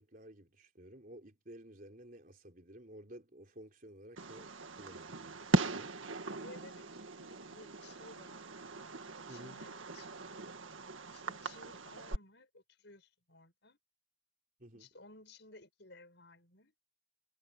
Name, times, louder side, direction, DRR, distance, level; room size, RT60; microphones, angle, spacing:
voice 1, 0.0-4.5 4.8-5.4 5.6-6.0 9.3-9.6 14.6-14.9, right 1 dB, 45° right, 3.9 m, -53 dB
Fireworks, 4.2-12.2, right 2 dB, 80° right, 1.9 m, -39 dB
voice 2, 6.4-8.4 9.3-10.2 11.1-13.8 14.7-16.7, left 2 dB, 60° left, 6.6 m, -57 dB
head